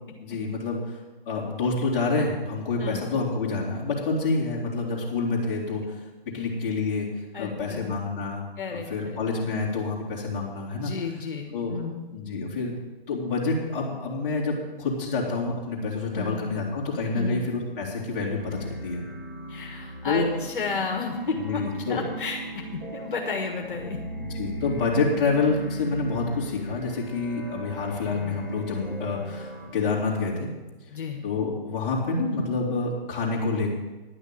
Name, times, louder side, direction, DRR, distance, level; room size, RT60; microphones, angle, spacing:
voice 1, 0.2-0.9 1.3-5.8 6.3-7.1 7.4-8.4 8.7-10.9 11.5-11.8 12.1-12.7 13.1-19.0 20.0-20.3 21.4-22.0 24.2-30.5 31.2-33.7, left 3 dB, 20° left, -3 dB, 2.6 m, -27 dB
voice 2, 7.3-8.0 8.5-9.5 10.7-12.0 16.1-16.5 17.1-17.4 19.5-21.6 21.9-22.6 22.9-24.0 30.9-31.2, left 4 dB, 60° left, 2 dB, 1.6 m, -33 dB
sound 1, 18.4-29.7, right 1 dB, 25° right, 2.7 m, -38 dB
10.5 x 6.2 x 8.5 m, 1.2 s
figure-of-eight pair, 135°, 29 cm